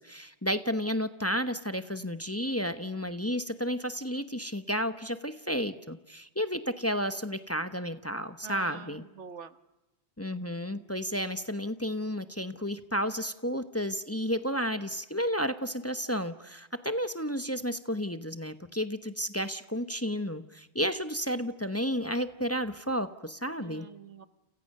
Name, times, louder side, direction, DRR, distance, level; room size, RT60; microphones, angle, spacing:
voice 1, 0.0-9.0 10.2-23.9, equal, 15° left, 11 dB, 0.9 m, -32 dB
voice 2, 8.4-9.5 23.6-24.3, right 6 dB, 85° right, 12 dB, 1.6 m, -44 dB
29.5 x 28.5 x 6.6 m, 1.0 s
omnidirectional pair, 1.2 m